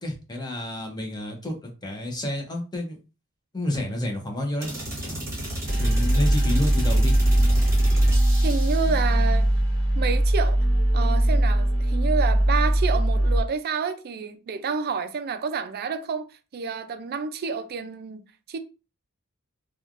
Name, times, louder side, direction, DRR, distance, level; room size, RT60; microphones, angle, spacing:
voice 1, 0.0-3.0 3.5-4.7 5.0-5.2 5.8-7.1, left 1 dB, 20° left, 0.7 m, -30 dB
sound 1, 4.6-9.1, right 1 dB, 15° right, 1.1 m, -32 dB
sound 2, 5.7-13.4, right 1 dB, 55° left, 0.8 m, -20 dB
voice 2, 8.4-9.5 9.9-10.6 10.9-16.3 16.5-18.2 18.5-18.6, right 5 dB, 45° right, 0.4 m, -29 dB
3.1 x 2.3 x 2.5 m
head